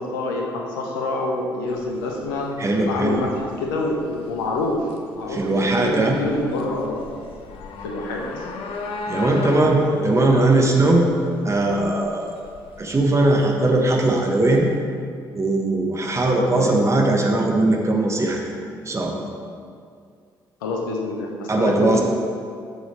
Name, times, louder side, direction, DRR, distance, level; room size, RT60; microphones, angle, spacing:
voice 1, 0.0-2.5 2.9-3.3 3.6-4.8 5.2-7.1 7.8-8.4 9.2-9.5 9.7-10.6 16.5-16.8 20.6-22.0, left 2 dB, 75° left, 0 dB, 1.1 m, -27 dB
sound 1, 1.7-14.8, left 3 dB, 55° left, 0.8 m, -38 dB
voice 2, 2.6-3.2 5.3-6.2 9.1-11.0 11.4-12.4 12.8-14.7 15.3-18.4 18.8-19.2 21.5-22.0, right 2 dB, 25° right, 0 dB, 1.4 m, -19 dB
10.5 x 7.1 x 3.3 m, 2.2 s
figure-of-eight pair, 45°, 11 cm